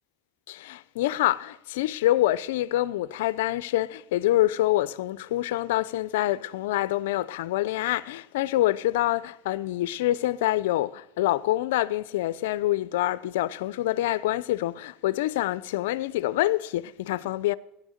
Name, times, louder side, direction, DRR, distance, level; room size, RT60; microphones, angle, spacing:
voice 1, 0.5-17.5, left 15 dB, 80° left, 0.5 m, -26 dB
15.0 x 10.5 x 6.5 m
supercardioid pair, 95°, 0 cm